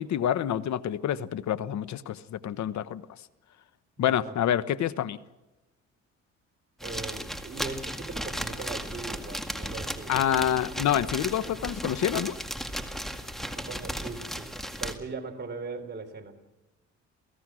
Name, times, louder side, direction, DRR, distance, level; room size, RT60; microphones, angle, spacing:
voice 1, 0.0-3.1 4.0-5.2 10.1-12.4, left 10 dB, 65° left, 15 dB, 1.1 m, -27 dB
voice 2, 4.0-4.4 6.8-10.3 13.4-14.5 14.8-16.3, right 4 dB, 35° right, 4 dB, 4.0 m, -39 dB
sound 1, 6.8-15.0, equal, ahead, 2.0 m, -35 dB
28.5 x 17.5 x 6.3 m, 1.1 s
cardioid pair, 90°, 30 cm